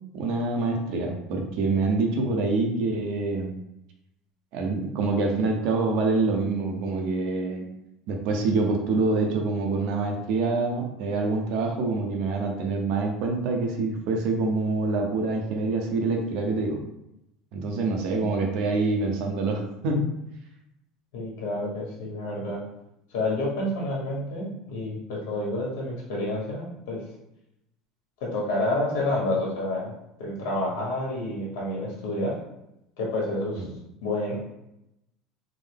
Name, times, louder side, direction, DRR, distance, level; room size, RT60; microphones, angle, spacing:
voice 1, 0.1-3.5 4.5-7.7 8.1-16.8 17.5-20.1 33.6-33.7, right 3 dB, 60° right, 2 dB, 0.7 m, -26 dB
voice 2, 21.1-22.6 23.1-27.0 28.2-32.4 33.0-33.7 34.0-34.4, left 1 dB, 80° left, -3 dB, 1.3 m, -29 dB
3.7 x 2.0 x 3.5 m, 0.85 s
cardioid pair, 150°, 0 cm